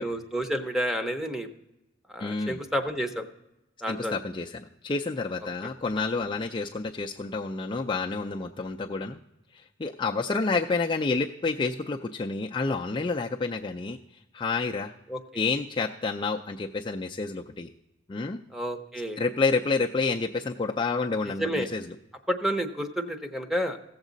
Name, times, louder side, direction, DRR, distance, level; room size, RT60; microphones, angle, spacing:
voice 1, 0.0-1.5 2.1-3.2 3.8-4.2 15.1-15.4 18.5-19.2 21.4-21.7 22.3-23.8, equal, ahead, 6 dB, 0.7 m, -30 dB
voice 2, 2.2-2.6 3.9-9.2 9.5-14.0 14.3-14.9 15.3-17.7 18.1-18.4 19.2-21.8, left 4 dB, 25° left, 1 dB, 0.4 m, -29 dB
16.0 x 7.3 x 3.9 m, 0.93 s
head